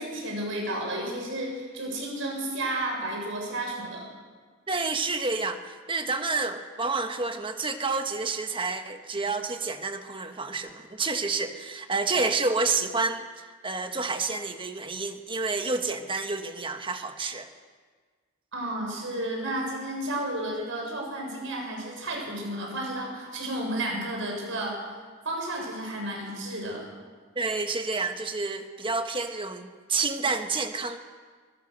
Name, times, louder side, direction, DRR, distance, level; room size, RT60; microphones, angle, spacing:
voice 1, 0.0-4.1 18.5-24.8 25.2-26.9, right 1 dB, 65° right, 1 dB, 7.1 m, -32 dB
voice 2, 4.7-17.5 27.3-31.0, right 3 dB, 25° right, 7 dB, 1.4 m, -29 dB
23.0 x 20.5 x 6.6 m, 1.5 s
head